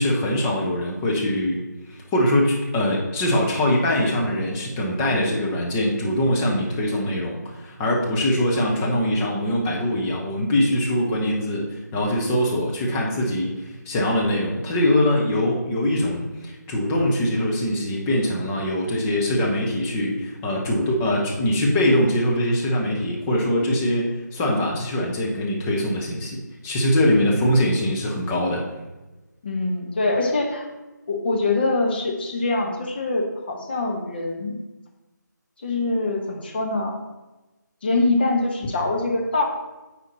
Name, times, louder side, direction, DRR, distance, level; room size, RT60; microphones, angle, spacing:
voice 1, 0.0-1.6 1.9-28.6, left 1 dB, 5° left, -2 dB, 0.5 m, -22 dB
voice 2, 29.4-30.7 31.1-34.6 35.6-36.9 37.8-39.4, left 2 dB, 30° left, 1 dB, 1.0 m, -24 dB
8.9 x 4.3 x 4.1 m, 1.1 s
figure-of-eight pair, 160°, 10 cm